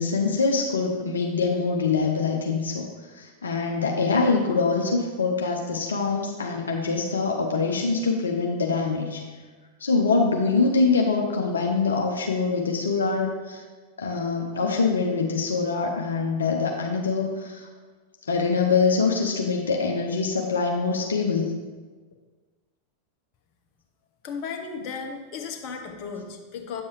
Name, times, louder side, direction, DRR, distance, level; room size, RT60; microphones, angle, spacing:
voice 1, 0.0-9.2 9.8-13.6 14.0-17.7 18.2-21.6, left 4 dB, 70° left, 1 dB, 0.7 m, -24 dB
voice 2, 24.2-26.8, left 5 dB, 40° left, 3 dB, 1.0 m, -35 dB
8.7 x 7.1 x 3.2 m, 1.4 s
figure-of-eight pair, 90°, 0 cm